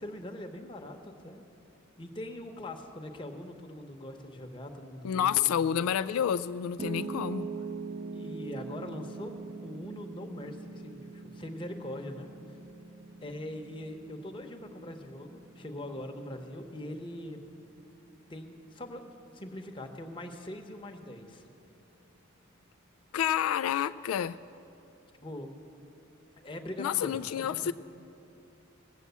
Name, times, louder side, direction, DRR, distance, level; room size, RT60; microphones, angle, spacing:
voice 1, 0.0-1.4 2.0-5.8 8.1-9.4 9.6-12.6 13.2-17.4 18.3-21.5 25.2-25.5 26.4-27.7, left 1 dB, 25° left, 4 dB, 0.9 m, -42 dB
voice 2, 5.0-7.5 23.1-24.4 26.8-27.7, left 9 dB, 90° left, 13 dB, 0.3 m, -29 dB
Piano, 6.8-19.0, right 4 dB, 30° right, 0.5 m, -43 dB
19.0 x 7.3 x 8.1 m, 2.8 s
head